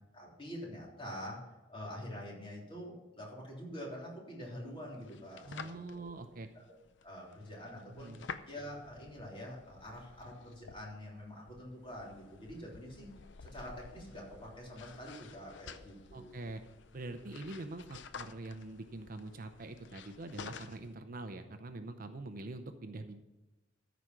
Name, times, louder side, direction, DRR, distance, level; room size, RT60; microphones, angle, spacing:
voice 1, 0.1-6.2 6.6-6.7 7.0-8.1 8.5-13.1 13.4-16.4, equal, 30° left, -3 dB, 3.5 m, -46 dB
sound 1, 4.5-20.9, left 5 dB, 65° left, 0.6 m, -52 dB
voice 2, 5.5-6.5 7.9-8.3 16.1-16.6 16.9-23.2, right 2 dB, 45° right, 8 dB, 0.6 m, -44 dB
14.0 x 5.1 x 6.1 m, 1.1 s
head